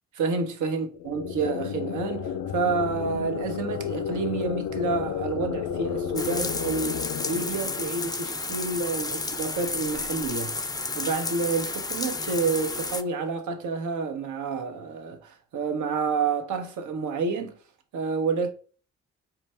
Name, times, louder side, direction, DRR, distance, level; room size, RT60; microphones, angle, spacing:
voice 1, 0.1-10.6 10.9-17.5 17.9-18.5, right 4 dB, 70° right, 0.8 m, -29 dB
sound 1, 0.9-8.6, left 8 dB, 80° left, 0.5 m, -32 dB
sound 2, 6.2-13.0, left 3 dB, 15° left, 0.4 m, -32 dB
4.4 x 2.4 x 3.2 m
supercardioid pair, 50°, 31 cm